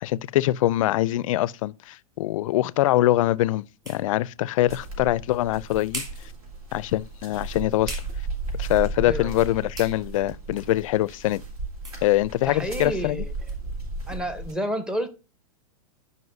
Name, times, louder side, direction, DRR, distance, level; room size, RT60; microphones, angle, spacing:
voice 1, 0.0-6.0 6.7-8.0 8.6-11.4 12.0-13.2, left 15 dB, 60° left, 0.4 m, -23 dB
sound 1, 2.1-13.6, right 2 dB, 20° right, 2.9 m, -46 dB
sound 2, 4.7-14.5, right 3 dB, 80° right, 3.3 m, -35 dB
voice 2, 12.5-13.3 14.1-15.1, equal, 5° right, 0.7 m, -29 dB
9.5 x 5.3 x 2.6 m
hypercardioid pair, 140°, 19 cm